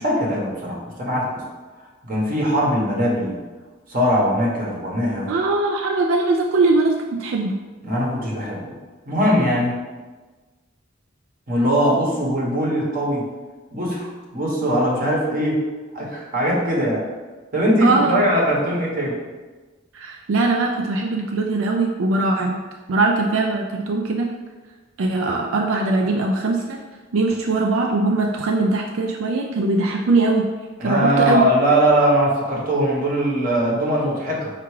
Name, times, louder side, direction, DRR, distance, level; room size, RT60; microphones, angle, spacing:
voice 1, 0.0-1.4 2.0-3.4 3.9-5.3 7.8-8.7 9.1-9.8 11.5-13.3 13.7-15.6 15.9-17.0 17.5-19.2 30.8-34.5, equal, 45° right, -3 dB, 0.9 m, -21 dB
voice 2, 5.3-6.9 7.2-7.6 17.8-18.2 19.9-22.6 22.9-24.3 25.0-26.8 27.1-30.5 30.8-31.4, right 3 dB, 80° right, 1 dB, 0.4 m, -21 dB
4.6 x 2.5 x 4.6 m, 1.3 s
head